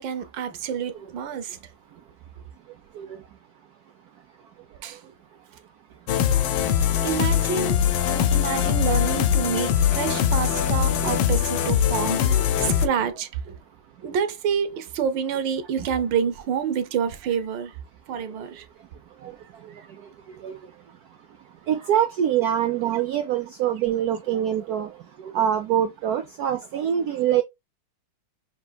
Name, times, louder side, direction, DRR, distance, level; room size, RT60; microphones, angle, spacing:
voice 1, 0.0-1.6 4.8-5.0 6.3-6.4 6.9-13.6 14.0-17.7 18.1-18.6, right 7 dB, 70° right, 1.3 m, -28 dB
sound 1, 6.1-12.9, left 9 dB, 75° left, 1.4 m, -22 dB
voice 2, 12.0-12.8 19.2-19.3 20.4-20.6 21.7-24.9 25.2-27.4, right 10 dB, 90° right, 0.8 m, -25 dB
6.6 x 2.7 x 2.3 m
omnidirectional pair, 2.3 m